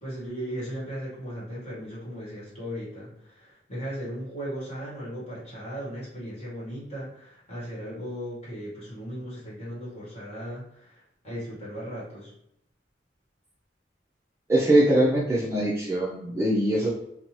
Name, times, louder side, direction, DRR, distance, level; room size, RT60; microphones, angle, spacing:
voice 1, 0.0-12.3, equal, 35° left, -7 dB, 1.3 m, -37 dB
voice 2, 14.5-16.9, right 1 dB, 15° right, -5 dB, 0.4 m, -22 dB
2.7 x 2.2 x 2.9 m, 0.77 s
head